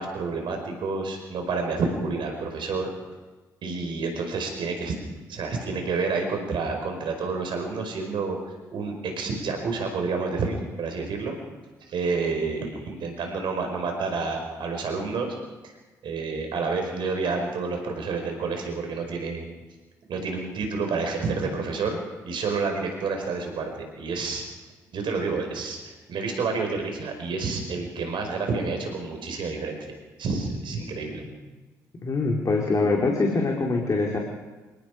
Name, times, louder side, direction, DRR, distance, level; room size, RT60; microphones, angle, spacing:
voice 1, 0.0-2.9 3.6-4.9 5.3-8.4 8.7-11.3 11.9-15.4 15.6-15.7 16.0-19.5 20.1-22.0 22.2-24.4 24.9-31.2, right 4 dB, 55° right, 3 dB, 5.1 m, -29 dB
voice 2, 32.0-34.2, left 3 dB, 35° left, -1 dB, 4.3 m, -23 dB
27.0 x 19.0 x 5.1 m, 1.2 s
hypercardioid pair, 45°, 10 cm